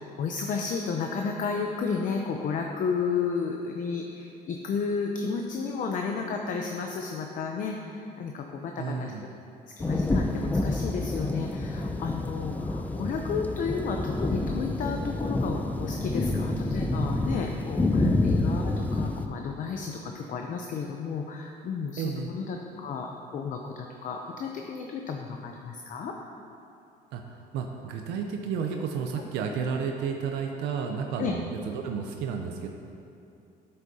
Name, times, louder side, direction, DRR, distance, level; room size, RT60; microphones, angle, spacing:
voice 1, 0.2-9.1 9.8-23.1 23.3-26.1 31.2-31.3, left 5 dB, 50° left, 2 dB, 0.6 m, -32 dB
voice 2, 8.8-9.2 18.0-18.2 22.0-22.3 27.1-32.7, right 6 dB, 90° right, 3 dB, 0.6 m, -32 dB
sound 1, 9.8-19.3, left 2 dB, 10° left, 0.4 m, -28 dB
9.3 x 7.7 x 2.8 m, 2.6 s
cardioid pair, 110°, 17 cm